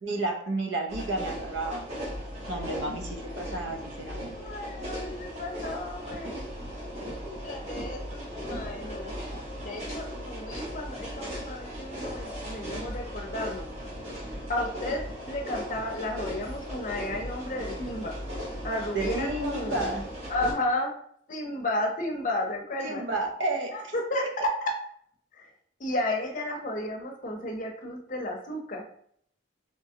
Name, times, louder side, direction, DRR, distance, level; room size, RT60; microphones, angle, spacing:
voice 1, 0.0-1.8 2.5-4.4 18.9-20.0 22.8-23.7, right 2 dB, 70° right, 2 dB, 0.7 m, -31 dB
sound 1, 0.9-20.5, equal, 35° right, 1.0 m, -37 dB
voice 2, 2.5-2.8 3.5-3.6 4.4-6.5 7.1-7.2 7.4-9.2 9.6-13.7 14.5-15.0 15.3-18.1 18.6-19.8 20.3-20.9 21.3-23.0 23.7-24.2 24.6-24.7 25.3-25.5 25.8-28.8, left 1 dB, 40° left, 1 dB, 0.6 m, -33 dB
3.4 x 2.9 x 2.8 m, 0.64 s
head